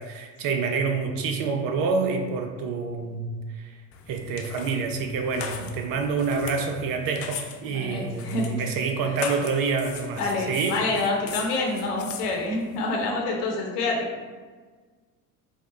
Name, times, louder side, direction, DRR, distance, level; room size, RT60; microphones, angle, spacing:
voice 1, 0.0-3.7 4.1-10.8, right 4 dB, 45° right, 4 dB, 0.6 m, -27 dB
sound 1, 3.9-13.1, left 7 dB, 30° left, 0.4 m, -40 dB
voice 2, 7.7-8.5 10.2-14.1, left 2 dB, 70° left, -1 dB, 1.0 m, -27 dB
5.0 x 2.2 x 3.9 m, 1.4 s
figure-of-eight pair, 60°, 48 cm